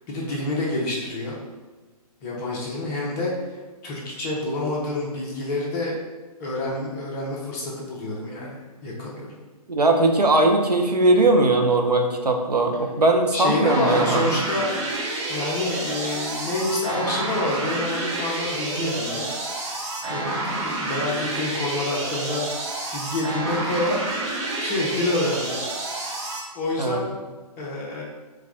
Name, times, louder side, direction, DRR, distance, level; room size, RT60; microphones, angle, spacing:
voice 1, 0.1-1.4 2.2-6.0 6.4-9.4 13.3-14.7 15.3-19.4 20.1-22.6 22.9-24.0 24.6-25.5 26.5-27.1 27.6-28.0, left 2 dB, 25° left, -4 dB, 1.0 m, -28 dB
voice 2, 9.7-14.4 18.8-18.9 26.8-27.0, right 2 dB, 80° right, 3 dB, 0.6 m, -19 dB
sound 1, 13.6-26.4, right 2 dB, 45° right, 1.0 m, -29 dB
4.6 x 2.4 x 3.6 m, 1.3 s
figure-of-eight pair, 125°, 20 cm